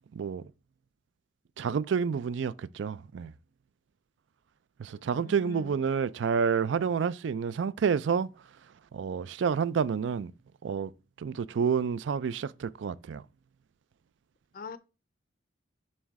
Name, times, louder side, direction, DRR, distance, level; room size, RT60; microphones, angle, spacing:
voice 1, 0.1-0.4 1.6-3.3 4.8-8.3 8.9-10.3 10.6-10.9 11.2-13.2, right 6 dB, 70° right, 0.4 m, -29 dB
voice 2, 5.1-5.8 14.5-14.8, left 4 dB, 50° left, 0.5 m, -43 dB
7.4 x 3.1 x 4.6 m
head